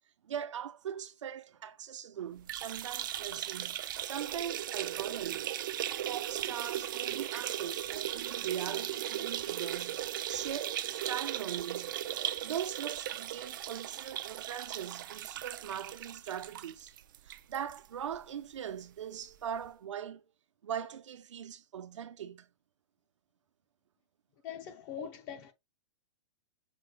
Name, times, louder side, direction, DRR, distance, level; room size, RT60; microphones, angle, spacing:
voice 1, 0.2-5.5 6.0-12.0 12.4-16.9 17.2-20.2 20.6-22.5, right 9 dB, 80° right, 0.9 m, -40 dB
sound 1, 2.4-17.8 18.1-18.2 18.6-18.7 19.7-19.8, right 12 dB, 45° right, 0.4 m, -37 dB
voice 2, 24.4-25.5, left 9 dB, 20° left, 0.5 m, -42 dB
6.1 x 2.2 x 3.8 m
hypercardioid pair, 170°, 15 cm